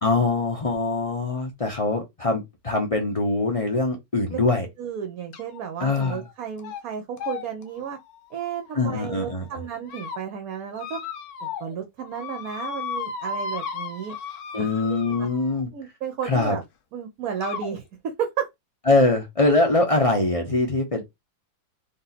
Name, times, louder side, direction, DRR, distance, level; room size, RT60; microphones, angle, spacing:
voice 1, 0.0-4.7 5.8-6.2 8.7-9.5 14.5-15.7 16.3-16.6 18.9-21.0, left 2 dB, 40° left, 0.5 m, -23 dB
voice 2, 4.8-8.0 8.3-11.0 11.4-14.2 14.6-15.3 15.7-16.6 16.9-18.5, right 8 dB, 60° right, 1.0 m, -33 dB
sound 1, 5.3-5.6 6.0-6.3 6.6-6.8 7.2-9.1 9.6-10.2 10.8-11.8 12.0-15.6 16.6-16.7 17.4-17.7, left 5 dB, 60° left, 1.1 m, -35 dB
3.5 x 2.7 x 4.1 m
omnidirectional pair, 2.1 m